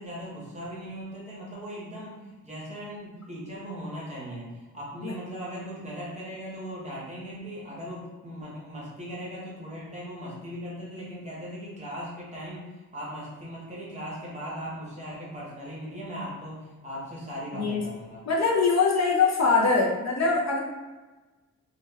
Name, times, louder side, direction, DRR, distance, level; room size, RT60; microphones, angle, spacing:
voice 1, 0.0-2.2 2.4-12.7 12.9-18.2, equal, 20° right, -6 dB, 0.7 m, -38 dB
voice 2, 18.3-20.6, left 4 dB, 55° left, -2 dB, 0.4 m, -23 dB
2.2 x 2.1 x 3.2 m, 1.2 s
wide cardioid pair, 160°, 33 cm